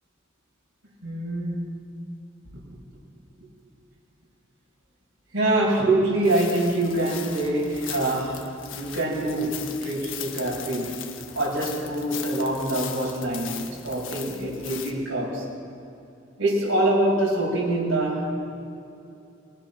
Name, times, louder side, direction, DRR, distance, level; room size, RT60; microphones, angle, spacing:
voice 1, 1.0-1.8 5.3-11.0 11.4-15.5 16.4-18.3, right 1 dB, 80° right, -3 dB, 7.0 m, -25 dB
sound 1, 6.2-14.9, left 9 dB, 70° left, 1.6 m, -39 dB
22.5 x 19.5 x 6.1 m, 2.7 s
head